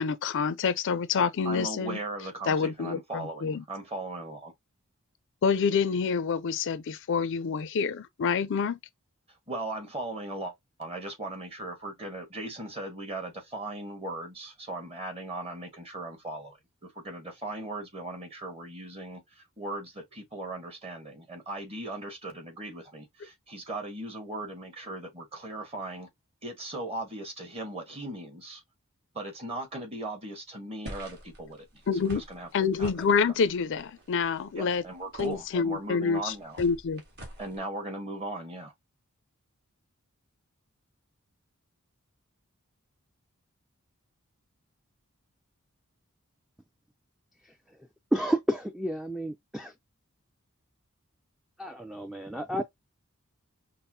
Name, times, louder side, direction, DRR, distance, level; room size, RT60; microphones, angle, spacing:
voice 1, 0.0-2.0 2.5-3.6 5.4-8.8 31.9-32.2 32.5-34.8 35.2-37.0, left 5 dB, 60° left, 0.4 m, -27 dB
voice 2, 1.4-4.5 9.5-10.5 10.8-26.1 26.4-28.6 29.1-33.0 34.5-36.6 37.4-38.7, right 2 dB, 30° right, 1.3 m, -38 dB
sound 1, 30.8-37.6, right 1 dB, 50° right, 1.6 m, -47 dB
voice 3, 48.1-49.7 51.6-52.6, right 1 dB, ahead, 0.4 m, -30 dB
5.4 x 2.0 x 2.7 m
head